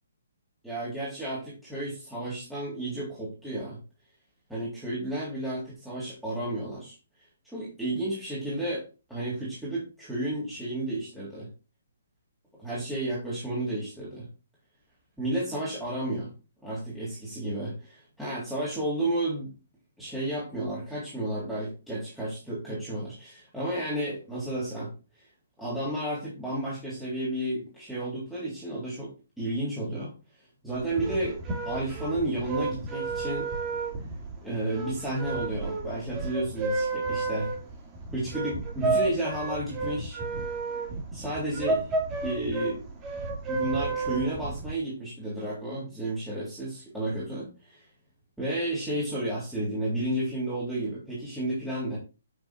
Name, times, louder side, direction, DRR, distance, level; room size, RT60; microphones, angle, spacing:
voice 1, 0.6-3.8 4.5-7.0 7.5-8.8 9.1-11.5 12.6-14.3 15.2-16.3 16.6-19.5 20.0-24.9 25.6-29.1 29.4-30.1 30.6-31.4 31.6-33.5 34.4-37.5 38.1-40.2 41.1-41.9 42.2-42.8 43.5-47.8 48.4-52.0, right 1 dB, 5° right, -8 dB, 3.3 m, -32 dB
sound 1, 30.8-44.7, right 3 dB, 20° right, 2.2 m, -31 dB
8.1 x 6.3 x 2.5 m, 0.30 s
figure-of-eight pair, 135°, 0 cm